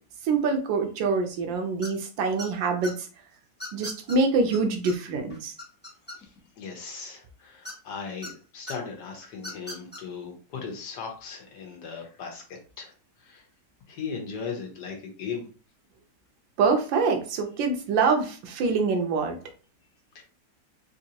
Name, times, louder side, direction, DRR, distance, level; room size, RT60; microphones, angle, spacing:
voice 1, 0.2-3.1 3.7-5.5 16.6-19.4, right 4 dB, 85° right, 4 dB, 1.4 m, -25 dB
sound 1, 1.8-2.1 2.4-2.9 3.6-4.2 4.5-4.6 4.9-5.0 5.3-6.5 7.6-8.3 8.7-8.8 9.4-10.0, left 1 dB, 5° left, 0.8 m, -38 dB
voice 2, 6.6-12.4 12.8-12.9 13.2-13.4 13.9-15.5 20.1-20.2, left 5 dB, 70° left, 1 dB, 1.5 m, -37 dB
4.1 x 2.6 x 2.8 m, 0.37 s
omnidirectional pair, 2.0 m